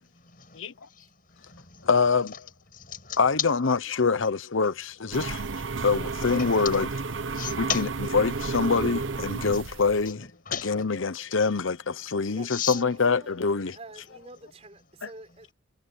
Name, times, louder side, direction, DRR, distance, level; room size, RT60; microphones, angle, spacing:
voice 1, 0.1-1.9 2.3-2.4 2.7-3.5 5.1-6.8 7.3-8.1 9.4-9.6 10.0-11.0 11.3-11.5 12.3-12.8 15.3-15.4, left 9 dB, 45° left, 7.3 m, -37 dB
voice 2, 1.8-2.3 3.2-5.4 5.8-6.8 7.6-7.7 8.1-10.2 10.7-13.7, left 4 dB, 85° left, 0.9 m, -25 dB
sound 1, 5.1-10.1, right 4 dB, 80° right, 1.0 m, -32 dB
voice 3, 12.3-15.5, right 2 dB, 30° right, 6.7 m, -47 dB
head